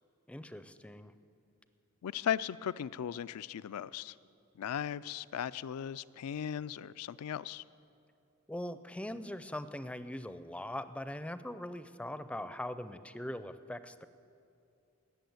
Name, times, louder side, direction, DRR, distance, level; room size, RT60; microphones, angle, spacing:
voice 1, 0.3-1.1 8.5-14.1, left 1 dB, 5° left, 12 dB, 0.4 m, -41 dB
voice 2, 2.0-4.1 4.6-7.6, left 9 dB, 85° left, 16 dB, 0.4 m, -37 dB
17.0 x 6.9 x 9.3 m, 2.6 s
head